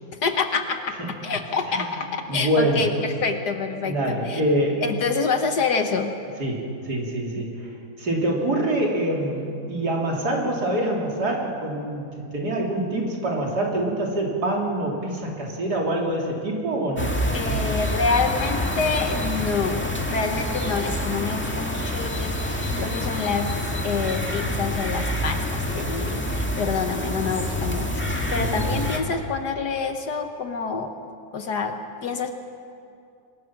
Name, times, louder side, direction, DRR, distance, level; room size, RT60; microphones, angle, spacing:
voice 1, 0.2-1.0 1.2-4.4 4.8-6.1 17.3-23.5 23.8-30.9 31.3-31.7 32.0-32.3, left 5 dB, 60° left, 6 dB, 1.6 m, -27 dB
voice 2, 2.3-2.9 3.8-4.8 6.4-7.7 8.0-17.2 28.4-28.8, right 1 dB, 55° right, -1 dB, 3.7 m, -25 dB
sound 1, 17.0-29.0, left 1 dB, 5° left, 1.7 m, -27 dB
24.0 x 21.0 x 6.0 m, 2.5 s
omnidirectional pair, 2.1 m